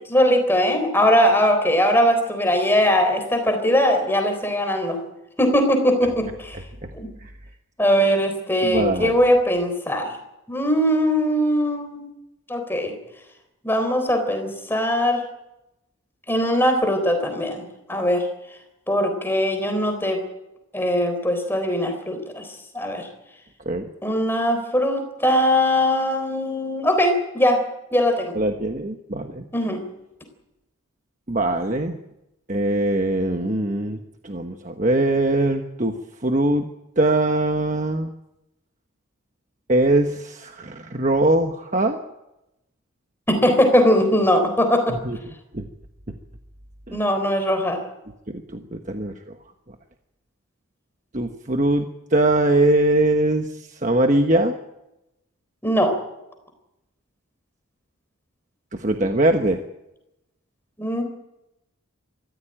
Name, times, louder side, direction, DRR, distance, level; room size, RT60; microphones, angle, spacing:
voice 1, 0.1-5.0 5.4-6.6 6.9-7.1 7.8-10.1 10.5-12.1 12.5-13.0 13.6-15.2 16.3-17.6 17.9-18.3 18.9-20.2 20.7-22.4 22.7-23.1 24.0-27.6 27.9-28.4 29.5-29.8 43.3-45.0 46.9-47.8 55.6-56.0 60.8-61.0, equal, 10° left, 6 dB, 3.8 m, -20 dB
voice 2, 8.6-9.2 23.7-23.9 28.4-29.4 31.3-32.0 32.5-34.0 34.2-36.0 36.2-36.6 37.0-38.1 39.7-42.0 45.0-45.2 45.5-45.6 48.5-49.1 51.1-53.5 53.8-54.5 58.8-59.6, right 1 dB, 35° right, 5 dB, 1.2 m, -21 dB
23.5 x 15.0 x 9.1 m, 0.91 s
head